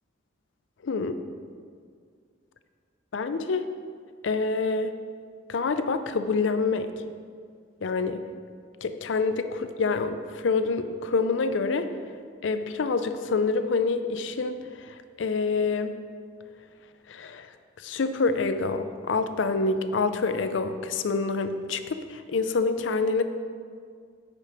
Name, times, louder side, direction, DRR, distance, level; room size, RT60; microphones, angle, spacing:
voice 1, 0.8-1.2 3.1-3.7 4.2-4.9 5.5-6.9 7.8-8.2 8.8-11.9 12.4-16.0 17.1-17.5 17.8-23.2, left 4 dB, 80° left, 10 dB, 0.5 m, -27 dB
8.1 x 5.2 x 4.9 m, 2.1 s
head